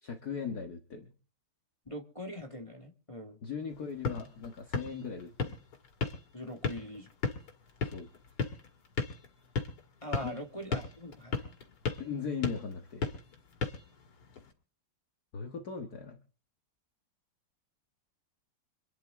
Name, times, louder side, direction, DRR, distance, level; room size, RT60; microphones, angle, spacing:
voice 1, 0.0-1.1 3.4-5.6 7.8-8.1 10.2-10.4 12.0-13.1 15.3-16.2, left 6 dB, 50° left, 4 dB, 1.9 m, -38 dB
voice 2, 1.9-3.4 6.3-7.1 10.0-11.5, equal, 15° left, 3 dB, 1.8 m, -42 dB
sound 1, 3.7-14.5, left 4 dB, 85° left, 3.1 m, -38 dB
26.5 x 10.5 x 3.7 m, 0.38 s
omnidirectional pair, 2.3 m